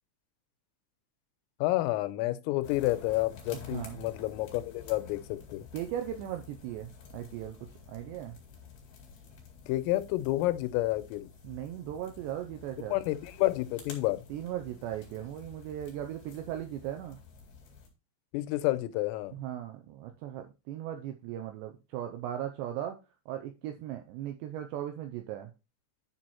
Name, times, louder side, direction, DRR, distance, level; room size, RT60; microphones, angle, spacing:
voice 1, 1.6-5.7 9.7-11.3 12.9-14.2 18.3-19.4, left 17 dB, 90° left, 3.3 m, -30 dB
sound 1, 2.6-17.9, left 5 dB, 50° left, 3.1 m, -51 dB
voice 2, 3.5-4.0 5.7-7.6 7.9-8.4 11.4-12.9 14.3-17.2 19.3-23.0 23.3-25.5, right 11 dB, 90° right, 2.5 m, -38 dB
10.5 x 4.7 x 4.2 m
omnidirectional pair, 5.8 m